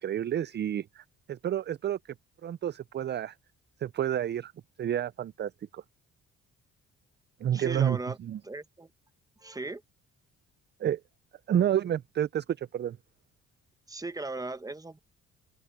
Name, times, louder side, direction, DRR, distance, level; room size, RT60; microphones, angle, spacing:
voice 1, 0.0-2.0 2.4-3.4 3.8-4.5 4.8-5.8 7.4-8.4 10.8-11.0 11.5-13.0, right 10 dB, 35° right, 0.4 m, -30 dB
voice 2, 7.5-8.2 8.4-8.9 9.4-9.8 13.9-15.0, right 2 dB, 10° right, 1.0 m, -37 dB
open air
cardioid pair, 90°, 30 cm